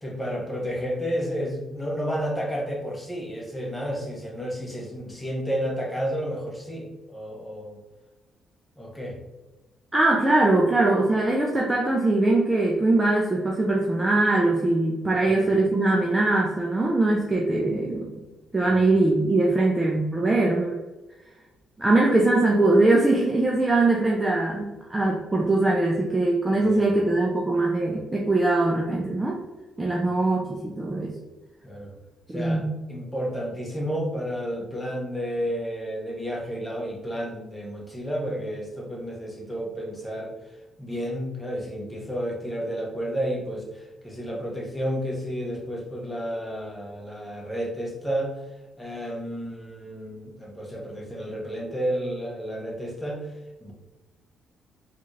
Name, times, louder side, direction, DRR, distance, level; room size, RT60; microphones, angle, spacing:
voice 1, 0.0-7.8 8.8-9.2 15.2-15.5 18.7-18.8 26.6-26.9 30.0-30.1 31.6-31.9 32.3-40.3 40.8-48.4 48.8-53.3 53.6-53.7, equal, 10° left, -1 dB, 1.0 m, -31 dB
voice 2, 9.9-18.2 18.5-20.8 21.8-29.4 29.8-31.1 32.3-32.7, right 2 dB, 15° right, -2 dB, 0.5 m, -22 dB
3.9 x 2.5 x 3.1 m, 1.1 s
cardioid pair, 90°, 0 cm